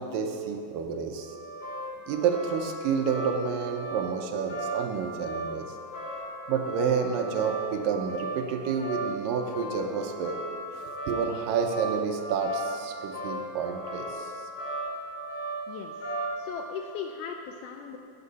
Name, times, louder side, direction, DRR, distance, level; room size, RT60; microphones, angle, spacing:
voice 1, 0.0-1.3 2.1-5.7 6.5-10.4 11.1-14.3, right 6 dB, 75° right, 4 dB, 2.3 m, -29 dB
sound 1, 1.2-16.5, right 2 dB, 60° left, 4.7 m, -36 dB
voice 2, 16.4-18.0, left 6 dB, 80° left, 3 dB, 1.9 m, -37 dB
15.0 x 9.5 x 4.1 m, 2.5 s
omnidirectional pair, 4.2 m